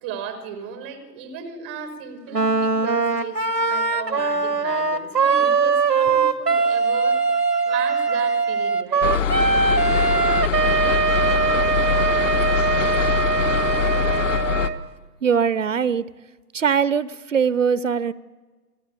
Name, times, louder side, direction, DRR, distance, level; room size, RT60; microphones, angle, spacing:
voice 1, 0.0-7.2 7.6-9.2, right 7 dB, 5° right, 10 dB, 0.6 m, -35 dB
Wind instrument woodwind instrument, 2.3-14.8, right 5 dB, 85° right, 1.2 m, -21 dB
sound 1, 9.0-14.7, left 8 dB, 50° left, 1.1 m, -23 dB
voice 2, 15.2-16.1 16.5-18.1, right 7 dB, 50° right, 19 dB, 0.7 m, -21 dB
26.0 x 18.5 x 8.4 m, 1.3 s
figure-of-eight pair, 130°, 48 cm